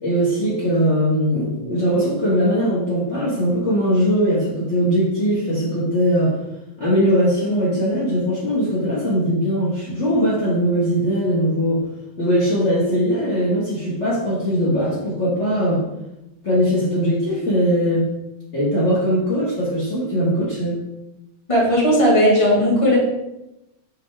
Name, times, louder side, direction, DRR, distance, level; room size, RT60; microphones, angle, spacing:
voice 1, 0.0-6.4 6.8-11.8 12.2-15.8 16.4-18.1 18.5-20.7, equal, 40° left, -7 dB, 1.8 m, -20 dB
voice 2, 21.5-23.0, equal, 15° left, -6 dB, 2.0 m, -16 dB
7.7 x 4.2 x 3.6 m, 0.92 s
omnidirectional pair, 2.1 m